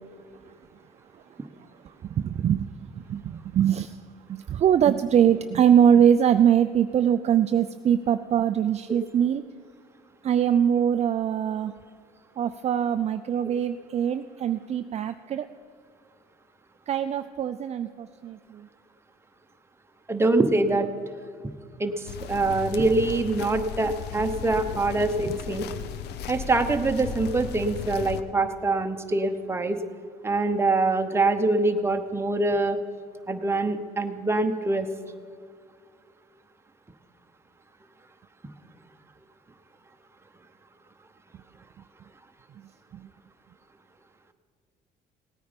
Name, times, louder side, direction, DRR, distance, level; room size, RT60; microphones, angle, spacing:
voice 1, 1.8-4.0 4.3-9.4 10.2-11.7 12.4-15.5 16.9-18.7 25.3-25.4 42.9-43.1, right 9 dB, 40° right, 9 dB, 0.4 m, -23 dB
voice 2, 20.1-20.9 21.8-21.9 22.3-25.7 26.3-29.8 30.2-32.8 33.3-34.9, right 2 dB, 15° right, 6 dB, 0.9 m, -24 dB
sound 1, 22.1-28.2, left 8 dB, 75° left, 0.7 m, -36 dB
17.5 x 9.4 x 5.2 m, 2.1 s
cardioid pair, 110°, 17 cm